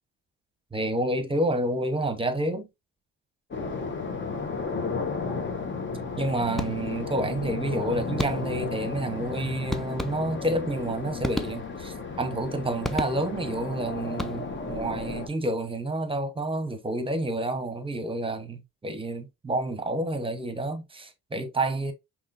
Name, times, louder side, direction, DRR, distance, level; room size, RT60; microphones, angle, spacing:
voice 1, 0.7-2.7 6.2-21.9, right 1 dB, 15° right, 0.9 m, -29 dB
sound 1, 3.5-15.3, left 4 dB, 40° left, 1.0 m, -33 dB
sound 2, 6.6-7.1 8.2-8.7 9.7-10.6 11.2-12.0 12.8-13.5 14.1-14.7, left 1 dB, ahead, 0.5 m, -33 dB
5.4 x 2.9 x 2.5 m
cardioid pair, 90°, 30 cm